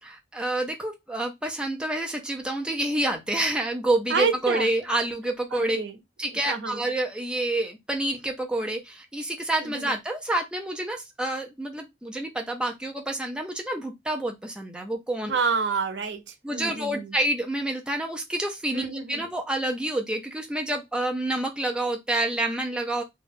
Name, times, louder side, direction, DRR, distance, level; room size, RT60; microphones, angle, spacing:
voice 1, 0.0-5.8 6.2-15.4 16.4-23.0, right 1 dB, 5° right, 0.5 m, -28 dB
voice 2, 4.1-4.7 5.5-6.0 6.5-6.8 9.6-9.9 15.2-17.1 18.7-19.2, right 5 dB, 75° right, 0.6 m, -28 dB
2.6 x 2.3 x 3.4 m
head